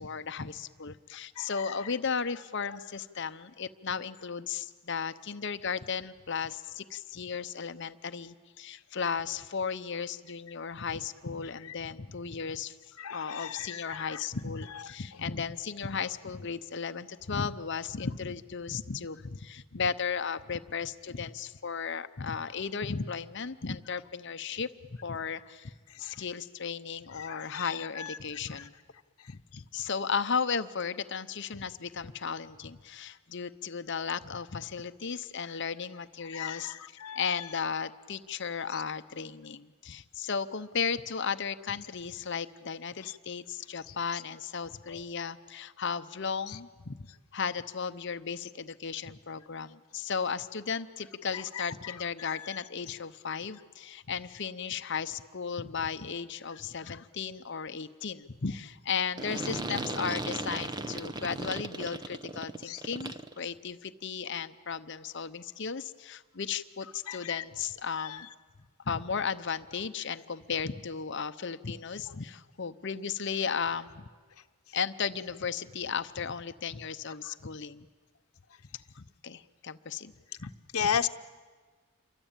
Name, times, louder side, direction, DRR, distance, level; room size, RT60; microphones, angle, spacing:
voice 1, 0.0-24.7 25.0-25.7 26.0-28.7 29.3-68.3 68.9-74.1 74.7-77.9 78.9-80.1 80.4-80.5 80.8-80.9, left 6 dB, 55° left, 11 dB, 0.8 m, -35 dB
voice 2, 13.0-14.2 27.2-27.7 28.0-28.2 36.3-37.2 44.9-45.0 52.2-52.4 62.7-62.8 67.1-67.4 68.0-68.2 80.7-81.1, left 8 dB, 80° left, 5 dB, 0.9 m, -34 dB
sound 1, 59.2-63.4, right 2 dB, 20° right, 0.8 m, -36 dB
28.0 x 23.5 x 9.0 m, 1.5 s
head